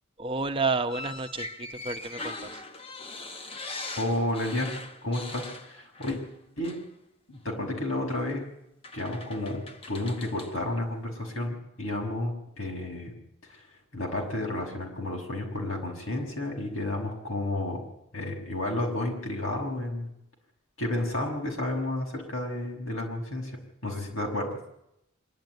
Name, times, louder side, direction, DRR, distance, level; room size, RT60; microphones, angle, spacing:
voice 1, 0.2-2.6, right 3 dB, 25° right, 6 dB, 0.9 m, -30 dB
sound 1, 0.9-6.4 6.6-6.9 8.1-8.2 8.8-10.6, left 2 dB, 25° left, 1.1 m, -41 dB
voice 2, 4.0-4.8 5.0-6.2 6.6-6.8 7.3-8.5 8.9-13.1 13.5-13.6 13.9-17.9 18.1-20.1 20.8-24.6, left 1 dB, 85° left, 1 dB, 6.2 m, -31 dB
25.0 x 12.0 x 9.3 m, 0.81 s
head